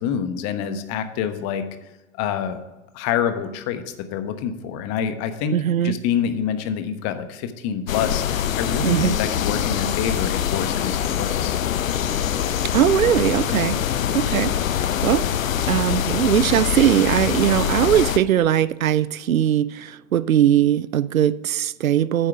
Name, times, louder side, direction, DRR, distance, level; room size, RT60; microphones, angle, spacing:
voice 1, 0.0-1.6 2.2-2.6 2.9-5.6 5.8-11.6, left 8 dB, 40° left, 1.1 m, -26 dB
voice 2, 5.5-6.0 8.8-9.2 12.7-13.8 14.1-15.3 15.7-22.3, right 10 dB, 80° right, 0.5 m, -20 dB
sound 1, 7.9-18.2, left 9 dB, 75° left, 0.7 m, -24 dB
9.7 x 7.7 x 4.8 m
figure-of-eight pair, 90°, 41 cm